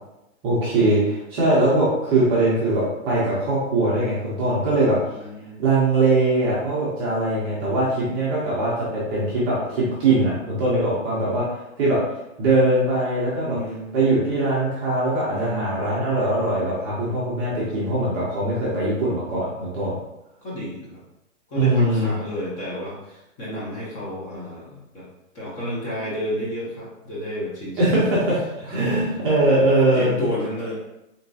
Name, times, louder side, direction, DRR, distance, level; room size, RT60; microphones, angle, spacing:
voice 1, 0.4-5.0 5.6-11.4 11.8-12.0 12.4-13.6 13.9-19.9 21.6-22.1 27.8-28.4 28.7-30.1, right 2 dB, 20° right, -7 dB, 0.6 m, -21 dB
voice 2, 5.2-5.6 13.4-14.0 15.3-16.0 18.2-18.5 20.4-21.0 21.5-25.1 25.3-28.1 28.6-29.2 29.9-30.7, equal, 20° left, -6 dB, 0.8 m, -31 dB
3.7 x 2.9 x 2.7 m, 0.90 s
hypercardioid pair, 150°, 39 cm